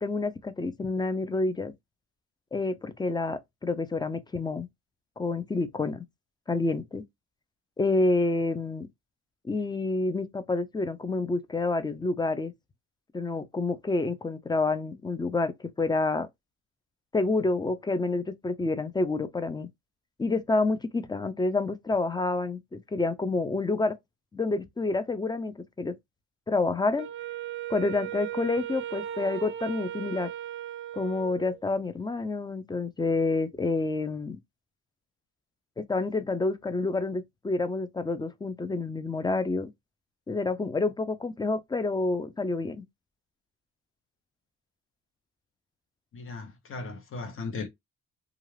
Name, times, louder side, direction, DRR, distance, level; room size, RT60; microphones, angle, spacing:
voice 1, 0.0-1.7 2.5-4.7 5.2-6.0 6.5-7.0 7.8-8.9 9.4-12.5 13.1-15.5 15.8-16.3 17.1-19.7 20.2-24.0 24.3-25.9 26.5-27.1 27.7-30.3 30.9-34.4 35.8-39.7 40.3-42.8, left 3 dB, 15° left, 0.4 m, -28 dB
Wind instrument woodwind instrument, 27.0-31.6, right 11 dB, 45° right, 0.4 m, -37 dB
voice 2, 46.1-47.7, left 3 dB, 45° left, 0.9 m, -37 dB
2.4 x 2.4 x 3.2 m
cardioid pair, 90°, 30 cm